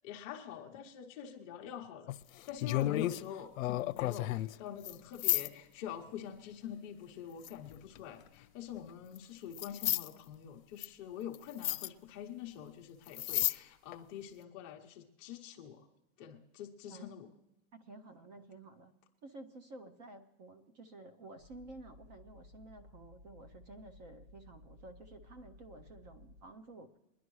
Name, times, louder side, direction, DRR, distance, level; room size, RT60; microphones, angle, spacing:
voice 1, 0.0-2.2 2.5-15.9 16.2-17.3, left 9 dB, 25° left, 1 dB, 0.8 m, -45 dB
sound 1, 2.1-3.2 3.6-4.5 4.8-4.9 5.2-5.5 7.4-8.0 9.2-9.3 9.6-10.1 10.8-10.9 11.3-11.4 11.6-11.9 13.1-13.6 13.9-14.0, left 15 dB, 85° left, 0.6 m, -32 dB
voice 2, 17.7-18.9 19.2-26.9, right 2 dB, 30° right, 11 dB, 0.6 m, -52 dB
sound 2, 21.4-26.4, left 2 dB, 60° right, 6.3 m, -58 dB
21.5 x 11.0 x 3.1 m, 0.95 s
supercardioid pair, 175°, 39 cm